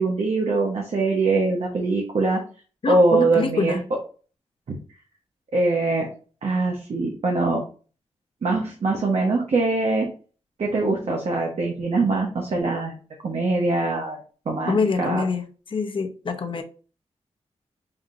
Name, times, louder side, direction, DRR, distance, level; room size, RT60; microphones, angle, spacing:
voice 1, 0.0-2.4 2.9-3.8 5.5-6.1 6.4-7.6 8.4-10.1 10.6-12.9 13.2-14.2 14.5-15.2, right 3 dB, 65° right, 0.9 m, -22 dB
voice 2, 2.8-3.8 14.7-16.6, left 4 dB, 45° left, 0.7 m, -25 dB
5.8 x 2.8 x 2.5 m
wide cardioid pair, 110°, 12 cm